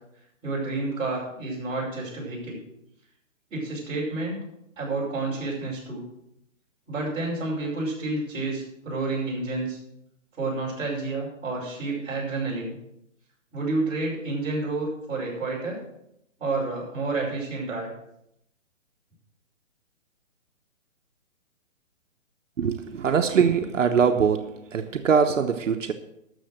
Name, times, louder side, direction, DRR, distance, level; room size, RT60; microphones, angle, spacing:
voice 1, 0.4-2.6 3.5-4.4 4.8-6.0 6.9-9.8 10.4-12.7 13.5-15.8 16.4-17.9, right 3 dB, 15° right, 5.6 m, -29 dB
voice 2, 22.6-25.9, right 6 dB, 75° right, 1.1 m, -22 dB
13.0 x 6.8 x 6.6 m
hypercardioid pair, 165°, 38 cm